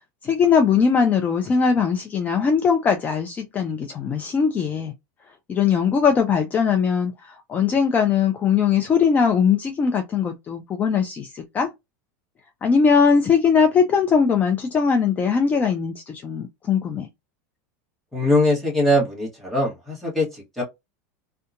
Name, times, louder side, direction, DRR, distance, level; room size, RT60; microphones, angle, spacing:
voice 1, 0.2-4.9 5.5-11.7 12.6-17.1, left 6 dB, 20° left, 0.3 m, -20 dB
voice 2, 18.1-20.6, left 1 dB, ahead, 1.1 m, -21 dB
2.7 x 2.2 x 2.4 m
supercardioid pair, 150°, 8 cm